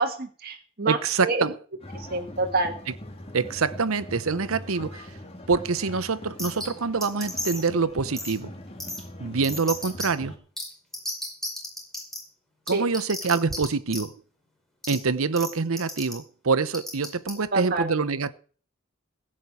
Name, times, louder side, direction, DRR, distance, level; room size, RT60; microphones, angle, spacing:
voice 1, 0.0-1.0 1.2-1.4 1.9-2.7 12.7-12.8 17.5-17.9, right 3 dB, 50° right, 1.5 m, -27 dB
voice 2, 0.9-1.6 2.9-3.0 3.3-5.1 5.5-8.5 9.2-10.3 12.7-14.1 14.9-18.3, right 4 dB, 85° right, 0.9 m, -25 dB
sound 1, 1.8-10.4, left 1 dB, 30° left, 2.6 m, -42 dB
sound 2, 6.4-6.7 7.0-7.7 8.2-8.3 8.8-9.0 9.4-10.1 10.6-10.7 10.9-12.2 12.7-13.6 13.9-14.0 14.8-14.9 15.4-15.5 15.8-16.1 16.7-17.3, left 1 dB, ahead, 4.7 m, -32 dB
16.0 x 6.3 x 8.4 m
head